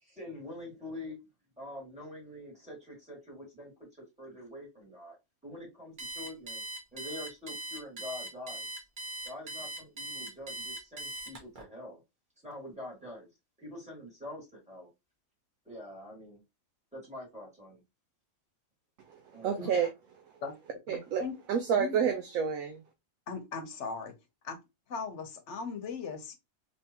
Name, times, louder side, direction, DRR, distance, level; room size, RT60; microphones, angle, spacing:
voice 1, 0.0-1.2 1.6-3.7 4.2-5.2 5.4-6.6 6.9-8.7 9.2-12.0 12.4-13.3 13.6-14.9 15.7-16.4 16.9-17.8 19.3-19.8, left 1 dB, 5° right, 2.1 m, -45 dB
Alarm, 6.0-11.6, right 2 dB, 40° right, 1.1 m, -40 dB
voice 2, 19.1-19.9 20.9-22.8, right 7 dB, 80° right, 1.0 m, -30 dB
voice 3, 20.9-21.3 21.7-22.0 23.3-24.1 24.4-24.6 24.9-26.4, left 5 dB, 60° left, 1.1 m, -38 dB
3.5 x 3.0 x 2.8 m
omnidirectional pair, 1.5 m